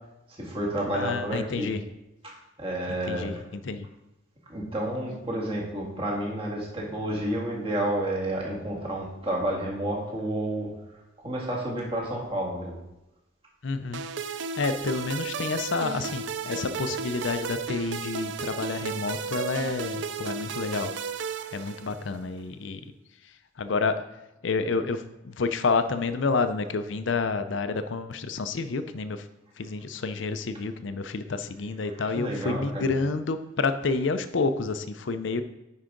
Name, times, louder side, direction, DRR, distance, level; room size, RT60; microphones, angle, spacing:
voice 1, 0.4-1.7 2.2-3.3 4.5-10.7 11.2-12.8 21.6-21.7 31.9-32.9, right 1 dB, 30° right, -3 dB, 1.9 m, -30 dB
voice 2, 0.9-1.8 3.1-3.3 3.6-3.9 13.6-14.0 14.6-20.9 21.5-22.8 23.6-24.0 24.4-29.2 29.6-35.4, left 4 dB, 70° left, 10 dB, 0.5 m, -29 dB
sound 1, 13.9-22.2, right 5 dB, 60° right, 0.4 m, -34 dB
9.7 x 4.8 x 3.9 m, 0.97 s
head